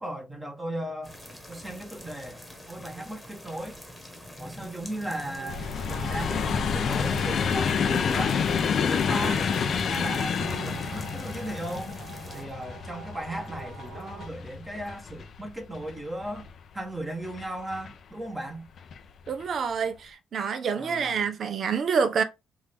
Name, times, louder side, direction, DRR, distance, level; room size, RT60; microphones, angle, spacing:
voice 1, 0.0-1.2 1.5-2.4 2.7-3.8 4.4-9.5 9.9-11.9 12.3-16.5 16.7-18.7 20.8-21.3, right 1 dB, 15° right, 1.2 m, -36 dB
sound 1, 1.0-12.4, left 1 dB, 5° left, 1.4 m, -45 dB
sound 2, 5.3-14.3, right 5 dB, 90° right, 1.1 m, -44 dB
sound 3, 5.5-16.6 17.2-17.9 18.8-19.0 19.3-19.4, left 6 dB, 55° left, 0.6 m, -29 dB
voice 2, 19.3-22.2, right 6 dB, 55° right, 0.8 m, -27 dB
4.8 x 2.7 x 3.6 m
cardioid pair, 90°, 0 cm